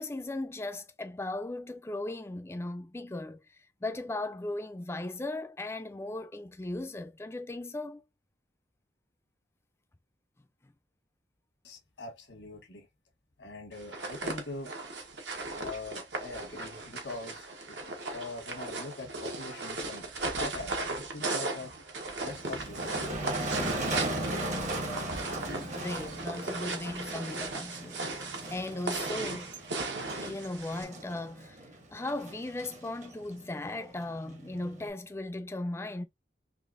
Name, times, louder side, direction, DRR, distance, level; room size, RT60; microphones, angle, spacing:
voice 1, 0.0-3.4 3.8-8.0 25.6-28.0 28.5-29.5 30.2-31.6 31.9-36.0, left 2 dB, 15° left, 0.4 m, -37 dB
voice 2, 11.6-12.9 13.4-14.7 15.5-21.8 22.2-23.4 23.8-24.5, left 2 dB, 85° left, 1.3 m, -43 dB
sound 1, 13.8-30.8, right 3 dB, 75° right, 1.0 m, -37 dB
Motor vehicle (road), 22.2-34.9, right 1 dB, 40° right, 0.8 m, -38 dB
3.9 x 2.9 x 2.5 m
head